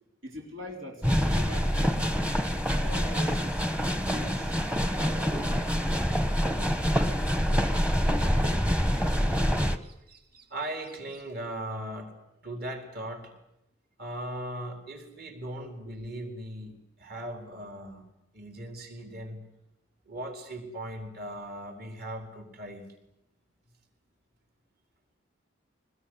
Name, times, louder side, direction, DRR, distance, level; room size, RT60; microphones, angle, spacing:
voice 1, 0.2-2.4 2.7-5.5, left 1 dB, 75° right, 1 dB, 4.0 m, -43 dB
sound 1, 1.0-9.8, equal, 5° right, 1.1 m, -26 dB
voice 2, 8.0-8.7 9.0-12.1 12.4-13.3 14.0-18.0 18.3-19.4 20.1-22.8, right 1 dB, 50° right, 4 dB, 4.5 m, -39 dB
23.5 x 20.5 x 9.8 m, 0.83 s
head